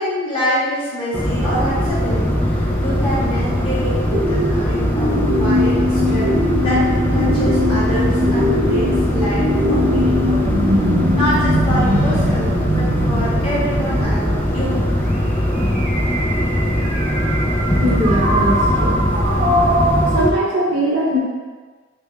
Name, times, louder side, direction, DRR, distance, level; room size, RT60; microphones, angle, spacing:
voice 1, 0.0-5.1 5.4-6.9 7.1-10.5 11.1-14.8, equal, 25° left, -10 dB, 1.5 m, -25 dB
sound 1, 1.1-20.3, equal, 10° left, 0.4 m, -20 dB
sound 2, 4.1-20.3, equal, 45° right, 0.5 m, -21 dB
voice 2, 17.8-19.0 20.0-21.2, equal, 65° right, -4 dB, 0.9 m, -20 dB
5.3 x 2.2 x 3.2 m, 1.4 s
head